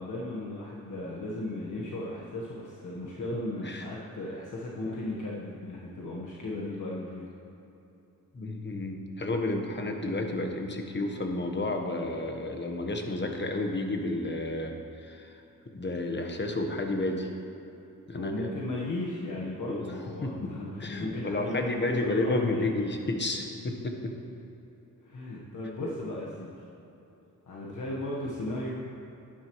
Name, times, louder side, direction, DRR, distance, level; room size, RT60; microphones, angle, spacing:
voice 1, 0.0-7.3 18.1-22.8 25.0-26.6 27.5-28.8, left 1 dB, 60° left, -4 dB, 1.3 m, -36 dB
voice 2, 8.3-15.3 15.7-17.3 18.1-18.5 19.7-19.9 20.2-20.5 20.8-24.1, left 2 dB, 30° left, 3 dB, 1.2 m, -31 dB
11.0 x 10.5 x 3.1 m, 2.9 s
cardioid pair, 80°, 34 cm